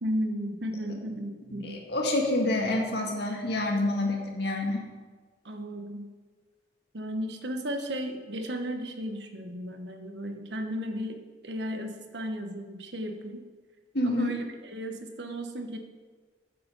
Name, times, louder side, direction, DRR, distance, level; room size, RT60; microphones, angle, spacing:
voice 1, 0.0-1.8 5.4-6.1 6.9-13.5 14.0-15.8, equal, 70° right, 5 dB, 1.1 m, -34 dB
voice 2, 1.6-4.8 13.9-14.3, left 1 dB, 60° left, 1 dB, 1.9 m, -27 dB
8.4 x 7.3 x 6.9 m, 1.4 s
head